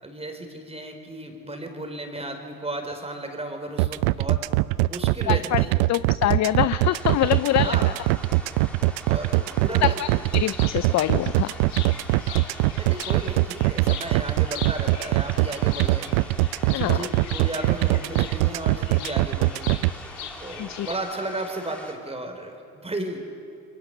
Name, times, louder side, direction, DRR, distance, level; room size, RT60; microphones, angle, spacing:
voice 1, 0.0-4.4 4.9-5.8 7.6-7.9 9.1-9.9 12.2-12.4 12.8-16.1 16.7-19.7 20.4-22.5 22.8-23.2, right 2 dB, 15° right, 4 dB, 4.4 m, -34 dB
sound 1, 3.8-19.9, right 21 dB, 70° right, 0.7 m, -22 dB
voice 2, 5.3-5.6 5.9-7.9 9.8-11.5 16.7-17.1 20.6-20.9, left 13 dB, 40° left, 14 dB, 0.6 m, -24 dB
sound 2, 6.9-21.9, equal, 5° left, 3.7 m, -43 dB
sound 3, 10.2-20.9, left 9 dB, 65° left, 2.7 m, -41 dB
29.5 x 22.5 x 6.9 m, 2.5 s
hypercardioid pair, 85°, 43 cm